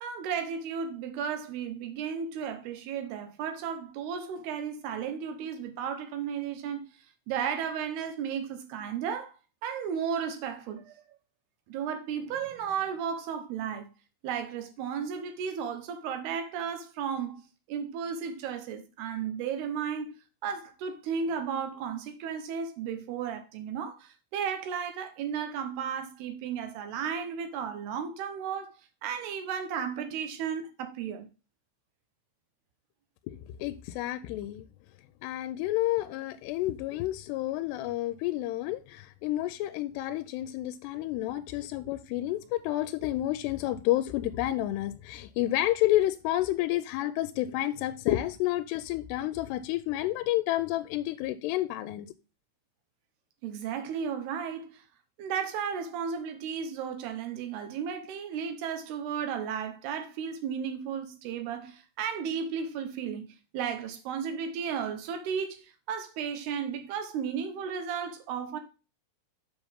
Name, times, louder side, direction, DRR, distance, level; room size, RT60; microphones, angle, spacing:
voice 1, 0.0-6.9 7.3-9.3 9.6-11.1 11.7-13.9 14.2-17.4 17.7-20.1 20.4-28.7 29.0-31.3 53.4-54.8 55.2-63.3 63.5-68.6, right 7 dB, 80° right, 3.0 m, -34 dB
voice 2, 33.3-34.7 35.2-52.1, left 15 dB, 85° left, 2.6 m, -30 dB
7.5 x 6.5 x 3.5 m
omnidirectional pair, 4.7 m